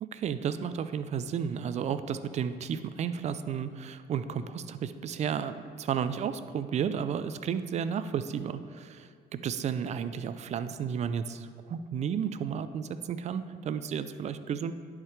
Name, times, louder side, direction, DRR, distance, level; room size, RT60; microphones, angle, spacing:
voice 1, 0.1-14.7, right 7 dB, 40° right, 12 dB, 0.4 m, -33 dB
10.5 x 4.8 x 3.2 m, 2.1 s
cardioid pair, 110°, 17 cm